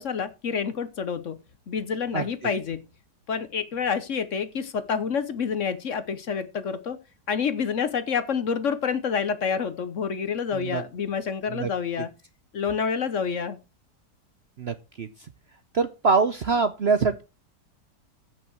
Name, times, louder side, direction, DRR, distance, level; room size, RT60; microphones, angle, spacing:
voice 1, 0.0-1.4 1.7-2.8 3.3-7.0 7.3-12.1 12.5-13.6, left 6 dB, 55° left, 1.1 m, -28 dB
voice 2, 10.5-10.8 11.5-11.7 14.6-15.1 15.7-17.2, right 4 dB, 55° right, 0.8 m, -24 dB
15.0 x 6.4 x 4.6 m
omnidirectional pair, 1.8 m